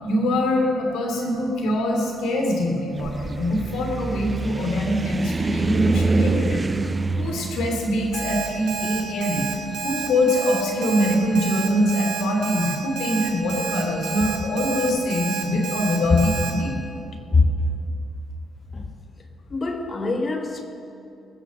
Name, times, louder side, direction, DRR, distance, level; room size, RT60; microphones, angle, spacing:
voice 1, 0.0-6.8 7.2-9.4 9.8-16.7, left 1 dB, 85° left, 2.8 m, -23 dB
sound 1, 2.9-10.1, right 3 dB, 25° right, 0.4 m, -26 dB
Alarm, 8.1-16.5, right 8 dB, 80° right, 2.1 m, -30 dB
voice 2, 17.3-17.7 18.7-18.9 19.5-20.6, left 3 dB, 35° left, 1.4 m, -23 dB
19.0 x 6.6 x 7.5 m
cardioid pair, 90°, 0 cm